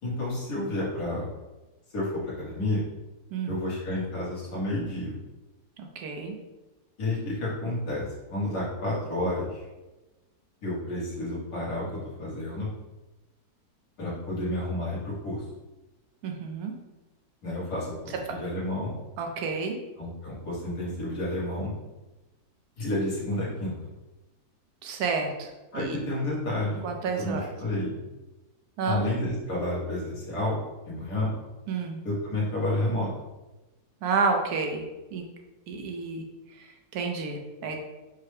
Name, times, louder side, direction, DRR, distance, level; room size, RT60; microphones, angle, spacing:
voice 1, 0.0-1.3 1.9-2.8 3.5-5.1 7.0-9.7 10.6-12.7 14.0-15.4 17.4-18.9 20.0-21.7 22.8-23.7 25.7-26.8 27.2-27.9 28.9-30.6 30.9-31.3 32.1-33.1, left 1 dB, 90° left, -7 dB, 2.0 m, -30 dB
voice 2, 5.8-6.3 16.2-16.7 19.2-19.8 24.8-26.0 26.8-27.4 28.8-29.0 31.7-32.0 34.0-34.8 35.1-35.2 35.7-36.2 36.5-37.8, right 4 dB, 80° right, 3 dB, 1.2 m, -30 dB
5.5 x 2.2 x 3.2 m, 1.1 s
omnidirectional pair, 1.6 m